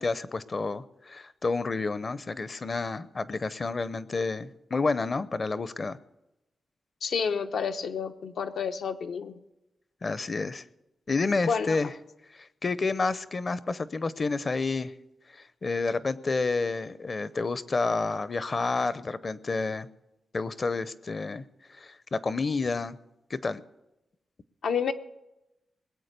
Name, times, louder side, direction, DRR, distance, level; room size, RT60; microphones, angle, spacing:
voice 1, 0.0-6.0 10.0-10.6 11.1-11.9 12.3-14.9 15.3-19.9 20.3-21.4 21.7-23.0 23.3-23.6, left 3 dB, 35° left, 16 dB, 0.6 m, -30 dB
voice 2, 7.0-9.4 11.4-11.8 24.6-24.9, left 6 dB, 80° left, 7 dB, 0.9 m, -29 dB
20.0 x 8.4 x 6.7 m, 0.92 s
wide cardioid pair, 140°, 0 cm